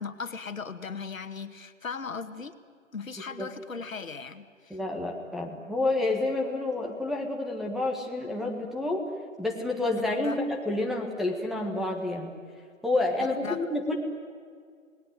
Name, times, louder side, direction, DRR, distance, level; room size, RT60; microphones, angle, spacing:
voice 1, 0.0-2.6 2.9-4.8 10.2-10.4 13.4-13.6, left 5 dB, 85° left, 9 dB, 2.0 m, -37 dB
voice 2, 4.7-9.0 9.4-12.3 12.8-14.0, left 2 dB, ahead, 2 dB, 1.6 m, -29 dB
28.0 x 19.5 x 9.4 m, 2.1 s
hypercardioid pair, 150°, 39 cm